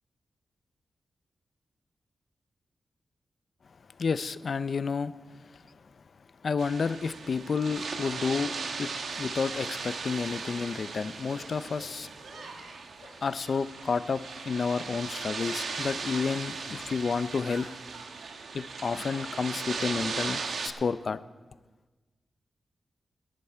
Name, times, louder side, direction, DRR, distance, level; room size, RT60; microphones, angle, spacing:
voice 1, 4.0-5.1 6.4-8.5 8.8-8.9 9.2-12.1 13.2-17.7 18.5-21.2, left 5 dB, 55° left, 14 dB, 0.4 m, -30 dB
sound 1, 6.6-20.7, right 4 dB, 80° right, 1.1 m, -37 dB
Shatter, 8.7-8.9 9.4-9.9 10.4-10.9 11.3-11.9 12.3-14.5 14.7-17.7, left 3 dB, 75° left, 2.4 m, -53 dB
18.0 x 11.0 x 4.5 m, 1.3 s
wide cardioid pair, 120°, 0 cm